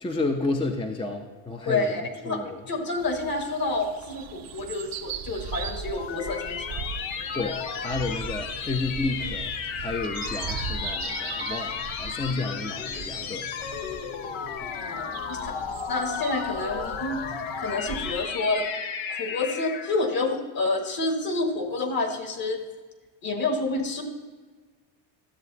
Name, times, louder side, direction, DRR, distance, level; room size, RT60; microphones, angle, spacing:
voice 1, 0.0-1.9 2.3-2.6 7.3-9.5 9.8-13.5, left 3 dB, 10° left, 4 dB, 0.6 m, -31 dB
voice 2, 1.6-2.4 2.7-6.8 14.6-15.5 15.9-17.2 17.6-18.7 19.1-22.6 23.2-24.0, left 3 dB, 45° left, 3 dB, 1.8 m, -28 dB
sound 1, 3.0-18.2, right 7 dB, 45° right, 0.7 m, -39 dB
sound 2, 5.5-20.1, left 7 dB, 65° left, 0.9 m, -34 dB
12.5 x 7.3 x 2.7 m, 1.3 s
supercardioid pair, 80°, 50 cm